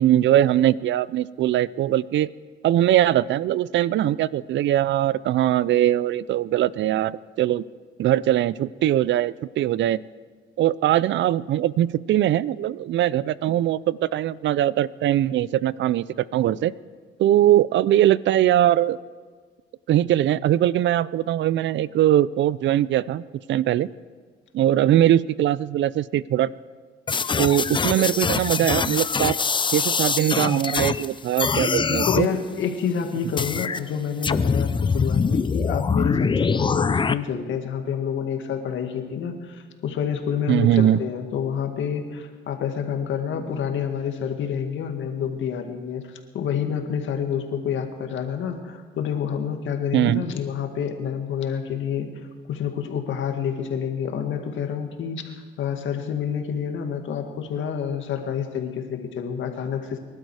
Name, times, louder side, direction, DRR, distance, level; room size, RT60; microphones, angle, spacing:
voice 1, 0.0-2.3 2.6-7.6 8.0-10.0 10.6-16.7 17.2-19.0 19.9-23.2 23.5-23.9 24.5-26.5 27.4-29.3 29.7-32.3 40.5-41.0 49.9-50.2, right 12 dB, 70° right, 20 dB, 0.5 m, -21 dB
sound 1, 27.1-31.1 31.4-32.3 33.4-33.8 34.2-37.1, left 5 dB, 25° left, 0.5 m, -23 dB
voice 2, 32.1-52.1 52.5-60.0, left 7 dB, 75° left, 5 dB, 2.0 m, -28 dB
24.0 x 12.0 x 4.8 m, 1.5 s
cardioid pair, 90°, 20 cm